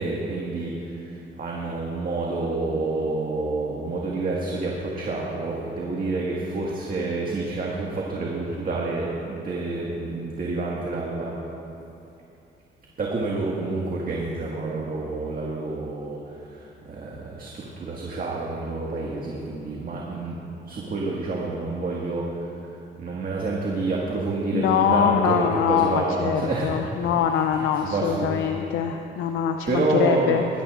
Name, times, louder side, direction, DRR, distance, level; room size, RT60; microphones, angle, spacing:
voice 1, 0.0-11.4 13.0-20.4 20.6-27.1 27.8-28.4 29.7-30.5, right 3 dB, 45° right, -4 dB, 1.6 m, -28 dB
voice 2, 24.5-30.4, left 8 dB, 85° left, 4 dB, 0.6 m, -23 dB
20.5 x 11.0 x 2.5 m, 2.8 s
cardioid pair, 90°, 20 cm